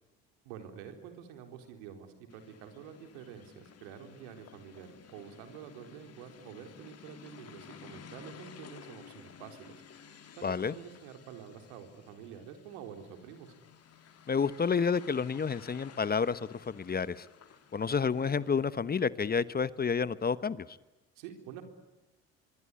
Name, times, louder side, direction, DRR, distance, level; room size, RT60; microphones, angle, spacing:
voice 1, 0.4-9.8 10.4-13.5 21.2-21.6, right 8 dB, 80° right, 6 dB, 4.1 m, -48 dB
sound 1, 2.3-18.7, left 7 dB, 50° left, 3.0 m, -54 dB
voice 2, 10.4-10.7 14.3-17.3 17.7-20.8, left 5 dB, 30° left, 16 dB, 1.1 m, -30 dB
25.5 x 23.5 x 9.9 m, 1.0 s
hypercardioid pair, 65°, 33 cm